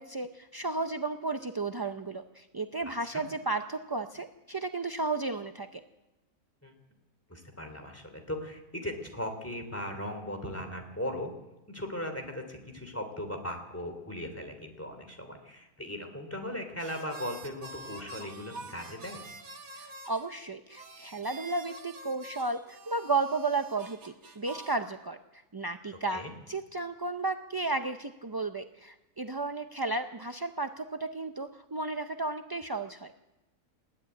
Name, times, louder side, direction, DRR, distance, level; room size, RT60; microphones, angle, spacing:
voice 1, 0.0-5.8 19.8-33.1, right 3 dB, 30° right, 7 dB, 0.4 m, -33 dB
voice 2, 7.3-11.3 11.7-19.2 26.1-26.3, left 1 dB, 10° left, 5 dB, 3.0 m, -38 dB
sound 1, 16.8-20.3 20.7-24.8, right 2 dB, 80° right, 2.1 m, -47 dB
20.5 x 13.5 x 9.6 m, 1.0 s
omnidirectional pair, 1.5 m